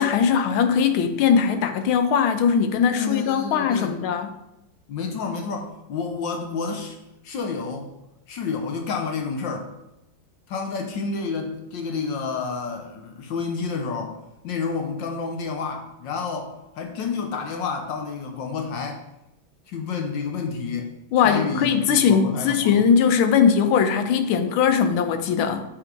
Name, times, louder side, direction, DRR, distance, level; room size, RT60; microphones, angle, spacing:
voice 1, 0.0-4.3 21.1-25.6, left 7 dB, 90° left, 9 dB, 1.5 m, -20 dB
voice 2, 2.9-4.0 4.9-7.0 7.2-7.9 8.3-9.7 10.5-14.2 14.4-19.0 19.7-20.9 21.2-22.9, left 5 dB, 70° left, 3 dB, 1.4 m, -29 dB
7.9 x 3.8 x 4.6 m, 0.90 s
omnidirectional pair, 2.2 m